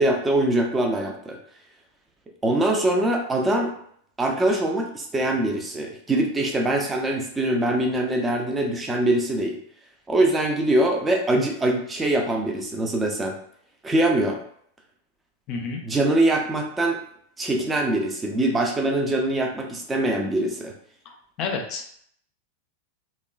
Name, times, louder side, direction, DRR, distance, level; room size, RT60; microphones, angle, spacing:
voice 1, 0.0-1.4 2.4-3.7 4.2-9.6 10.1-13.4 13.8-14.4 15.8-17.0 17.4-20.7, right 1 dB, 15° right, 2 dB, 0.5 m, -23 dB
voice 2, 15.5-15.8 21.1-21.8, left 4 dB, 35° left, 3 dB, 0.5 m, -30 dB
2.9 x 2.2 x 2.2 m, 0.64 s
figure-of-eight pair, 90°, 0 cm